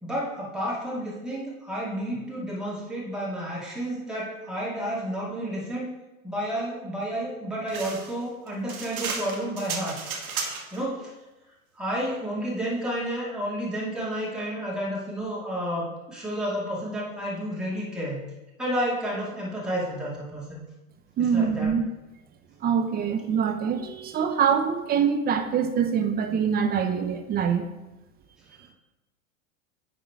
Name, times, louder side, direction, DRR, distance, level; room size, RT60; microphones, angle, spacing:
voice 1, 0.0-5.9 6.2-10.0 10.7-11.1 11.8-18.2 18.6-20.6 21.2-21.8, equal, ahead, -6 dB, 2.2 m, -31 dB
sound 1, 7.7-10.8, right 5 dB, 85° right, 1.4 m, -34 dB
voice 2, 21.2-21.9 22.6-27.7 28.6-28.7, right 7 dB, 20° right, 7 dB, 0.7 m, -24 dB
9.3 x 3.8 x 4.7 m, 1.0 s
hypercardioid pair, 115°, 42 cm